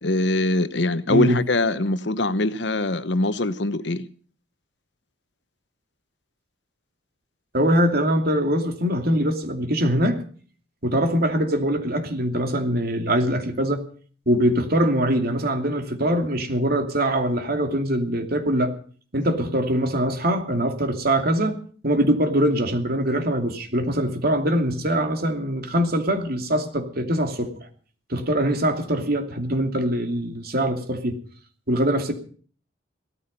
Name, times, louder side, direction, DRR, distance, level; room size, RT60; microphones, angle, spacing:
voice 1, 0.0-4.1, left 2 dB, 65° left, 1.0 m, -23 dB
voice 2, 7.5-10.2 10.8-13.8 14.3-18.7 19.1-21.5 21.8-27.7 28.1-31.2 31.7-32.1, right 1 dB, 50° right, 2.7 m, -23 dB
17.0 x 14.0 x 5.4 m
head